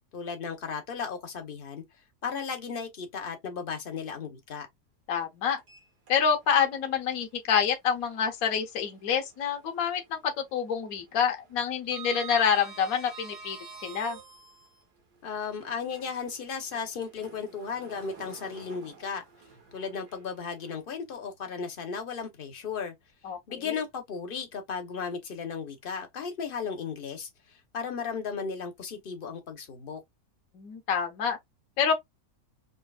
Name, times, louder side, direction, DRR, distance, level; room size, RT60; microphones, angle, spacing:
voice 1, 0.1-1.8 2.2-4.7 15.2-19.2 19.7-22.9 23.5-30.0, left 6 dB, 40° left, 1.0 m, -35 dB
voice 2, 5.1-5.6 6.1-14.2 23.2-23.8 30.5-31.4 31.8-31.9, left 7 dB, 65° left, 1.3 m, -27 dB
Sliding door, 5.6-6.6 6.9-7.1 8.8-9.8 10.1-10.5 10.7-14.8 15.5-20.7, right 6 dB, 80° right, 1.9 m, -47 dB
5.4 x 3.0 x 2.4 m
omnidirectional pair, 1.7 m